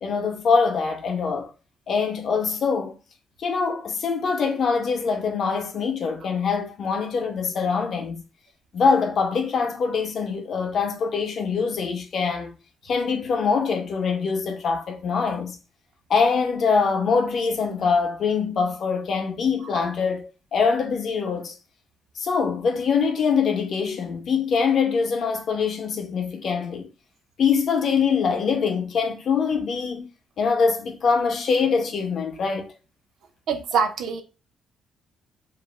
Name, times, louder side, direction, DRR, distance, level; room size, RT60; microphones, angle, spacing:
voice 1, 0.0-1.5 1.9-3.0 3.4-8.2 8.7-12.5 12.8-15.6 16.1-21.6 22.2-26.9 27.4-30.1 30.4-32.7, left 5 dB, 60° left, 0.6 m, -23 dB
voice 2, 33.5-34.2, right 6 dB, 80° right, 0.6 m, -24 dB
2.5 x 2.0 x 3.1 m
cardioid pair, 90°, 0 cm